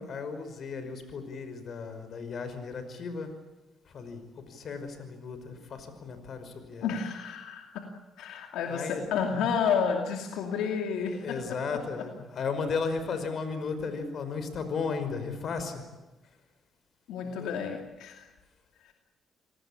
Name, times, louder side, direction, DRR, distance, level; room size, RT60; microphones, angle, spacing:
voice 1, 0.0-3.4 3.8-6.9 8.6-9.0 11.1-15.8 16.2-16.4 17.2-17.6, left 5 dB, 55° left, 9 dB, 5.4 m, -35 dB
voice 2, 6.8-7.8 8.2-11.4 17.1-18.3 18.8-18.9, left 6 dB, 90° left, 3 dB, 2.7 m, -30 dB
28.0 x 19.0 x 8.8 m, 1.1 s
cardioid pair, 90°, 0 cm